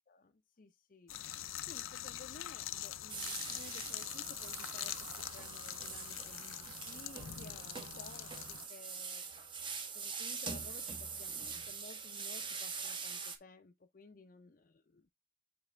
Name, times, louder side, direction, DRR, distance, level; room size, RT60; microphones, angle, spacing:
voice 1, 0.1-1.1 1.7-9.5 9.9-14.7, left 3 dB, 45° left, 0.5 m, -56 dB
sound 1, 1.1-8.7, left 12 dB, 90° left, 0.6 m, -44 dB
sound 2, 3.1-13.4, right 5 dB, 25° right, 0.8 m, -44 dB
8.9 x 3.4 x 3.3 m
head